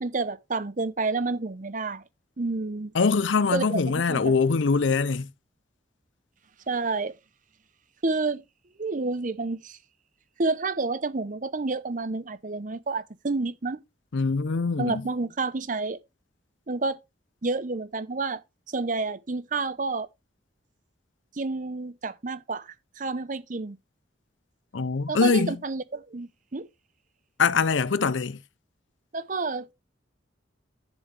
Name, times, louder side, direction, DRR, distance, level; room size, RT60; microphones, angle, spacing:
voice 1, 0.0-2.0 2.4-2.9 3.5-4.4 6.7-7.1 8.0-8.4 8.8-9.8 10.4-13.8 14.8-16.0 16.7-17.0 17.4-18.4 18.7-20.1 21.3-23.8 25.1-26.7 29.1-29.7, right 3 dB, 45° right, 0.7 m, -29 dB
voice 2, 2.9-5.3 14.1-15.0 24.7-25.5 27.4-28.4, left 4 dB, 85° left, 0.6 m, -23 dB
10.0 x 7.4 x 3.3 m
head